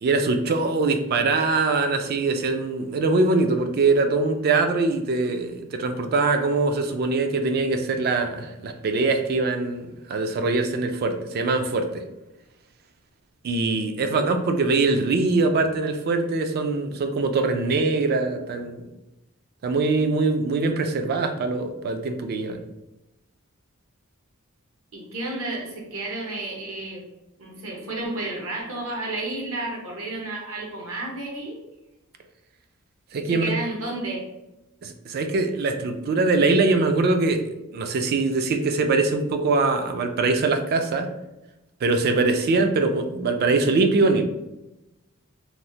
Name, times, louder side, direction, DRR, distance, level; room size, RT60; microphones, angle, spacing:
voice 1, 0.0-12.0 13.4-18.8 19.6-22.6 33.1-33.5 34.8-37.4 37.7-41.1 41.8-44.2, right 3 dB, 45° right, 6 dB, 0.3 m, -23 dB
voice 2, 24.9-27.0 27.4-31.6 33.2-34.2, right 2 dB, 65° right, -1 dB, 0.8 m, -31 dB
3.0 x 2.0 x 2.7 m, 0.96 s
head